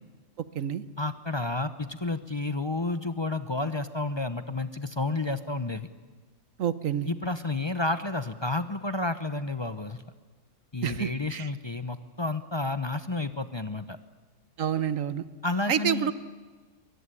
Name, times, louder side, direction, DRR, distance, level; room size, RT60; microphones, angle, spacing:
voice 1, 1.0-5.9 7.1-10.0 10.7-14.0 15.4-16.1, left 2 dB, 25° left, 10 dB, 0.8 m, -31 dB
voice 2, 6.6-7.1 10.8-11.5 14.6-15.2 15.7-16.1, right 8 dB, 85° right, 14 dB, 1.4 m, -28 dB
22.5 x 22.0 x 9.9 m, 1.4 s
omnidirectional pair, 1.3 m